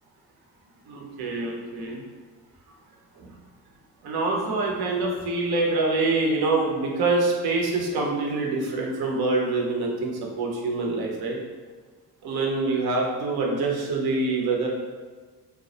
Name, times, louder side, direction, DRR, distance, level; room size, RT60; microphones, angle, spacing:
voice 1, 0.9-2.0 3.2-3.3 4.0-11.4 12.2-14.7, right 3 dB, 55° right, -1 dB, 0.7 m, -25 dB
2.2 x 2.0 x 2.7 m, 1.4 s
hypercardioid pair, 60°, 47 cm